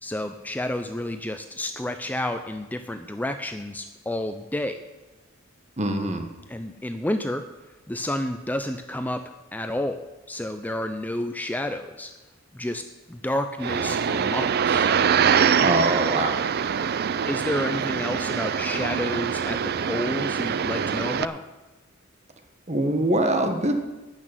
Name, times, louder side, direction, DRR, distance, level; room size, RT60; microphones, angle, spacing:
voice 1, 0.0-4.8 6.5-7.4 7.9-9.2 9.5-12.1 12.5-14.9 17.3-21.4, left 1 dB, 10° left, 8 dB, 0.5 m, -30 dB
voice 2, 5.8-6.3 15.6-16.3 22.7-23.7, right 1 dB, 35° right, 5 dB, 1.4 m, -23 dB
sound 1, 13.6-21.3, right 7 dB, 50° right, 0.4 m, -24 dB
12.0 x 6.2 x 9.1 m, 1.1 s
head